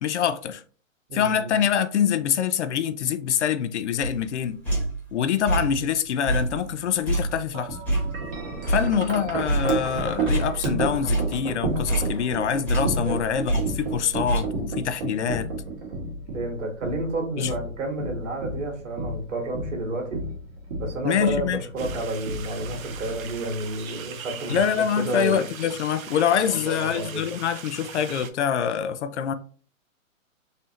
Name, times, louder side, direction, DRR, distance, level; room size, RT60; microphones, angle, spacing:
voice 1, 0.0-0.6 1.1-4.6 5.1-7.8 8.7-15.5 17.4-17.5 21.0-21.6 24.5-29.3, left 8 dB, 60° left, 0.5 m, -25 dB
voice 2, 1.1-1.5 8.8-8.9 13.0-13.2 16.3-20.2 20.8-24.6 25.0-25.4 26.5-27.2, right 2 dB, 65° right, 1.7 m, -30 dB
sound 1, 4.0-5.1 5.4-5.9 6.3-9.2 9.5-10.8 11.0-13.2 13.5-14.4, right 2 dB, 5° left, 1.4 m, -27 dB
Wind chime, 7.5-23.7, right 3 dB, 45° right, 1.5 m, -32 dB
sound 2, 21.8-28.3, right 7 dB, 80° right, 0.7 m, -40 dB
4.0 x 2.7 x 3.0 m
hypercardioid pair, 150°, 40 cm